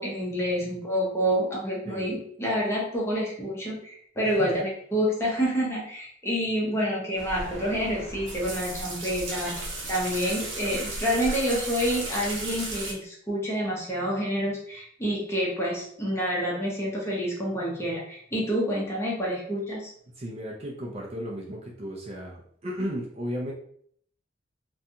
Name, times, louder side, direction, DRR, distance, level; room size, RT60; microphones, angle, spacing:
voice 1, 0.0-9.5 9.9-19.9, equal, 15° left, -4 dB, 0.6 m, -28 dB
voice 2, 1.8-2.2 4.2-4.5 20.2-23.5, equal, 35° right, -2 dB, 0.4 m, -35 dB
sound 1, 7.2-12.9, right 2 dB, 65° right, 0.8 m, -35 dB
2.5 x 2.2 x 2.7 m, 0.63 s
head